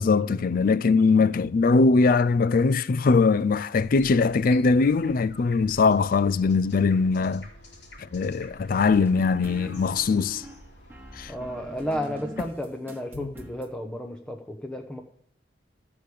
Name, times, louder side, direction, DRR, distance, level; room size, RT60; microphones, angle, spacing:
voice 1, 0.0-7.5 8.1-10.4 11.2-11.3 13.1-13.3, left 4 dB, 55° left, 0.4 m, -21 dB
sound 1, 3.8-12.0, left 1 dB, 70° left, 2.8 m, -49 dB
sound 2, 8.8-13.7, equal, 10° right, 1.3 m, -44 dB
voice 2, 11.3-15.0, equal, 5° left, 0.8 m, -32 dB
13.5 x 4.8 x 8.3 m
head